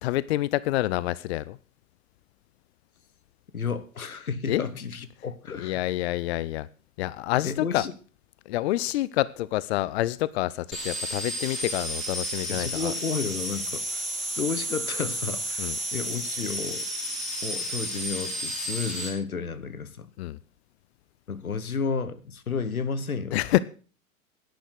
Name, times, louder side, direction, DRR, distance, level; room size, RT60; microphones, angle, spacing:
voice 1, 0.0-1.6 4.5-4.6 5.5-6.7 7.0-7.9 8.5-12.9 15.6-15.8 20.2-20.4 23.3-23.6, left 16 dB, 50° left, 19 dB, 0.6 m, -27 dB
voice 2, 3.5-5.8 7.4-7.9 12.5-14.1 14.3-16.9 17.4-20.1 21.3-23.4, left 5 dB, 85° left, 15 dB, 1.2 m, -32 dB
sound 1, 10.7-19.1, right 1 dB, ahead, 4.7 m, -32 dB
11.5 x 10.5 x 6.5 m, 0.39 s
figure-of-eight pair, 95°, 42 cm